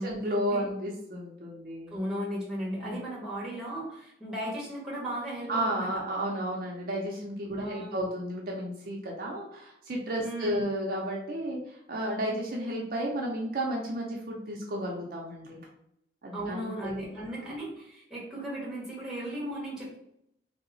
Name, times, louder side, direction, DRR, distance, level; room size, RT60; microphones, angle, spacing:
voice 1, 0.0-2.0 2.8-3.1 5.5-15.7 16.2-16.9, right 1 dB, 50° right, -2 dB, 0.5 m, -33 dB
voice 2, 1.9-5.9 7.5-8.0 10.2-10.6 16.3-20.0, right 1 dB, 5° right, -6 dB, 1.1 m, -36 dB
2.8 x 2.0 x 3.9 m, 0.75 s
head